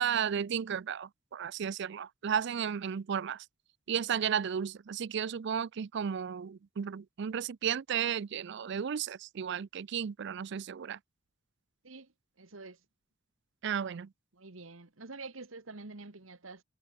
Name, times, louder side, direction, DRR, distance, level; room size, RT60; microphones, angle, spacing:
voice 1, 0.0-3.4 3.9-11.0 13.6-14.1, right 8 dB, 60° right, 0.4 m, -33 dB
voice 2, 11.8-12.8 14.3-16.6, right 3 dB, 85° right, 1.8 m, -47 dB
head